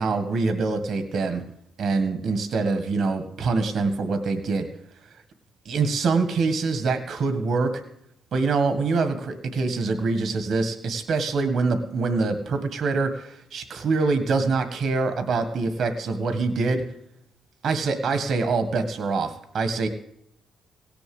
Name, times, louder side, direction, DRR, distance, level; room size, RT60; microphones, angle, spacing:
voice 1, 0.0-1.4 1.8-4.7 5.6-7.7 8.3-16.8 17.6-19.9, right 4 dB, 65° right, 8 dB, 1.7 m, -24 dB
17.0 x 7.0 x 7.9 m, 0.77 s
cardioid pair, 90°, 0 cm